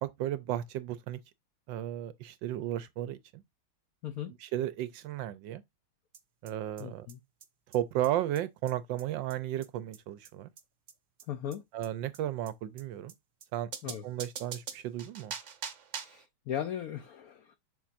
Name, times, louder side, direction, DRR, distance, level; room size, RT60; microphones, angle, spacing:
voice 1, 0.0-1.2 1.7-3.4 4.4-5.6 6.4-7.1 7.7-10.5 11.7-13.1 13.5-15.3, right 12 dB, 75° right, 1.1 m, -34 dB
voice 2, 4.0-4.4 6.8-7.2 11.3-11.6 13.8-14.0 15.9-17.6, left 10 dB, 80° left, 0.8 m, -38 dB
sound 1, 6.1-6.2 6.5-6.6 6.8-6.9 7.1-7.2 7.4-7.5 7.7-7.8 8.0-8.1 8.4-8.5 8.7-8.8 9.0-9.1 9.3-9.4 9.6-9.7 9.9-10.0 10.2-10.3 10.6-10.7 10.9-11.0 11.2-11.3 11.5-11.6 11.8-11.9 12.1-12.2 12.5-12.6 12.8-12.9 13.1-13.2 13.4-13.5 13.7-16.3, right 7 dB, 50° right, 0.9 m, -43 dB
7.2 x 5.9 x 2.5 m
omnidirectional pair, 2.3 m